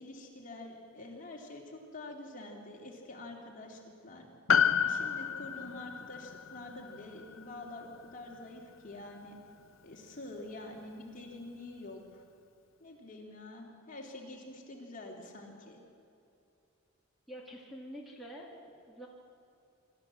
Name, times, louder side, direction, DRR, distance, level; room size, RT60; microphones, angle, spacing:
voice 1, 0.0-4.3 4.8-9.4 9.8-12.2 12.8-15.8, left 2 dB, 40° left, 0 dB, 3.0 m, -47 dB
Piano, 4.5-9.1 9.3-9.4, left 7 dB, 65° left, 0.8 m, -32 dB
voice 2, 17.3-19.1, equal, ahead, -2 dB, 2.2 m, -47 dB
26.0 x 13.0 x 7.7 m, 2.8 s
head